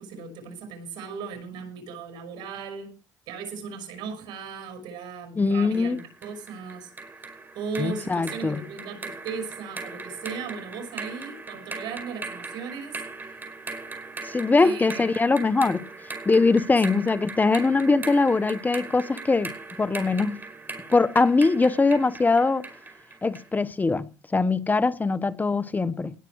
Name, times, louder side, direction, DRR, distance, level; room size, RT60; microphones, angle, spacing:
voice 1, 0.0-3.0 3.3-6.9 7.5-13.0 14.6-15.1, right 5 dB, 85° right, 5.9 m, -37 dB
voice 2, 5.4-6.0 7.8-8.6 14.3-15.9 16.3-19.5 19.8-20.4 20.9-22.6 23.2-26.1, left 3 dB, 25° left, 1.0 m, -22 dB
sound 1, 5.7-23.5, right 3 dB, 25° right, 5.0 m, -39 dB
19.5 x 7.7 x 4.7 m
cardioid pair, 80°, 7 cm